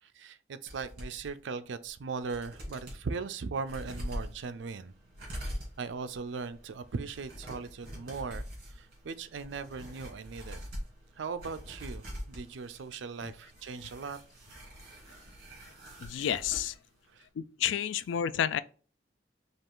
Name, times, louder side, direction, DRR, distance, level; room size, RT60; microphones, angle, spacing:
voice 1, 0.0-4.9 5.4-10.7 11.2-14.2 17.1-17.3, right 4 dB, 80° right, 0.4 m, -39 dB
sound 1, 0.7-1.3 1.8-1.9 2.2-3.0 3.6-16.8 17.0-17.1, equal, 55° right, 2.1 m, -44 dB
voice 2, 16.0-16.7 17.4-18.6, left 9 dB, 90° left, 0.3 m, -30 dB
5.3 x 2.4 x 3.7 m
head